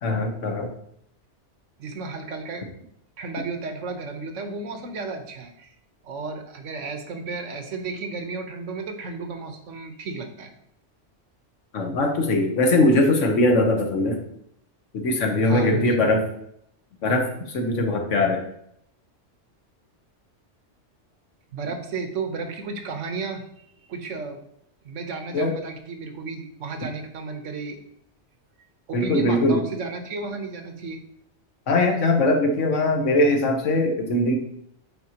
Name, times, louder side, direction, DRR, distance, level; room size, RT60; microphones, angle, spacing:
voice 1, 0.0-0.7 11.7-14.2 14.9-16.2 17.0-18.4 25.3-25.6 28.9-29.6 31.7-34.4, left 2 dB, 85° left, 4 dB, 1.3 m, -21 dB
voice 2, 1.8-2.7 3.2-5.7 6.0-10.5 15.4-16.0 21.5-23.4 23.9-24.4 24.8-27.8 28.9-31.0, right 4 dB, 90° right, 5 dB, 1.3 m, -33 dB
8.6 x 4.5 x 2.9 m, 0.73 s
omnidirectional pair, 1.2 m